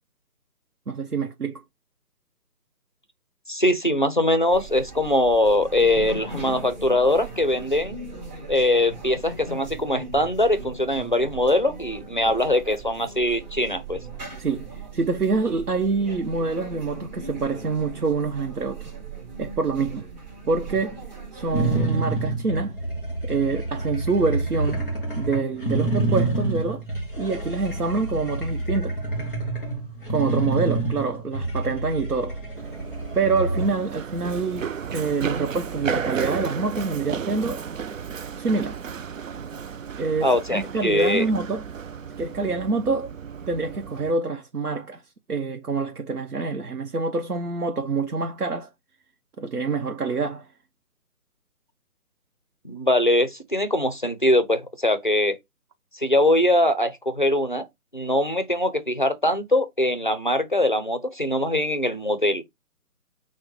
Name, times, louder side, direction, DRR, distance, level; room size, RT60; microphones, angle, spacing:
voice 1, 0.9-1.6 14.4-18.9 19.4-20.1 20.5-21.0 21.3-22.8 23.2-24.9 25.2-26.8 27.2-29.0 30.1-32.4 33.1-37.6 38.4-38.8 40.0-41.7 42.2-43.1 43.5-45.0 45.3-48.7 49.4-50.5, right 4 dB, 85° right, 0.8 m, -26 dB
voice 2, 3.5-8.0 8.5-14.0 40.2-41.3 52.6-55.4 55.9-57.7 57.9-62.4, left 1 dB, 35° left, 0.4 m, -22 dB
sound 1, 4.5-21.8, right 3 dB, 30° right, 1.3 m, -38 dB
sound 2, 21.5-33.7, right 2 dB, ahead, 0.8 m, -28 dB
Run, 32.6-44.1, right 6 dB, 60° right, 0.5 m, -33 dB
6.0 x 2.1 x 3.0 m
figure-of-eight pair, 150°, 45 cm